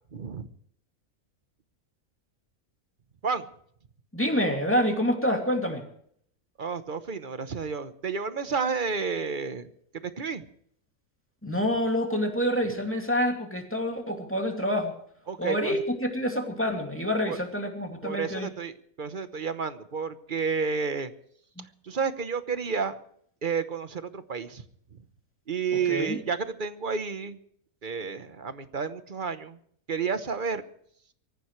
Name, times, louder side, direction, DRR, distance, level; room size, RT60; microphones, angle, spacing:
voice 1, 0.1-0.5 3.2-3.5 6.6-9.7 10.2-10.4 15.3-15.8 17.3-17.4 18.0-21.1 21.6-23.0 23.4-24.6 25.5-27.4 27.8-29.6 29.9-30.6, right 5 dB, 40° right, 11 dB, 1.1 m, -31 dB
voice 2, 4.1-5.8 11.4-14.9 15.4-18.5 21.6-21.7 25.9-26.2, equal, 10° left, 2 dB, 2.5 m, -27 dB
24.0 x 14.5 x 3.2 m, 0.63 s
omnidirectional pair, 1.5 m